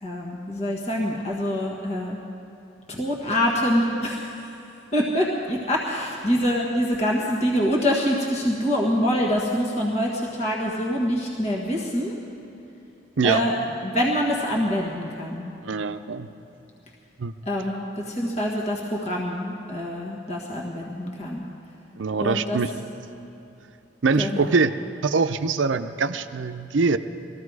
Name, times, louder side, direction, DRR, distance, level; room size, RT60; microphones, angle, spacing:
voice 1, 0.0-2.2 3.0-4.5 4.9-12.1 13.2-13.5 13.8-15.5 17.5-21.4 22.2-22.6 24.2-24.5, equal, 35° left, -3 dB, 1.5 m, -25 dB
voice 2, 15.6-16.3 17.2-17.3 22.0-22.7 24.0-24.7 25.0-27.0, right 4 dB, 80° right, 10 dB, 0.6 m, -23 dB
20.0 x 14.5 x 4.8 m, 2.9 s
head